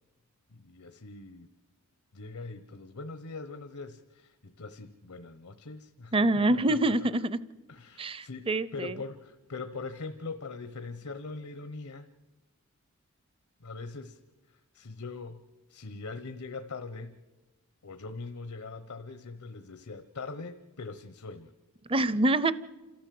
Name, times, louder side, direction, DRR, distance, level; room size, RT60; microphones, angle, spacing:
voice 1, 0.5-1.5 2.1-6.1 6.5-7.1 7.7-12.1 13.6-14.2 14.5-15.4 15.7-17.2 17.8-21.5, left 3 dB, 80° left, 10 dB, 1.0 m, -42 dB
voice 2, 6.1-7.4 8.0-8.9 21.9-22.5, right 2 dB, 25° right, 17 dB, 0.6 m, -25 dB
28.5 x 13.5 x 7.7 m, 1.2 s
head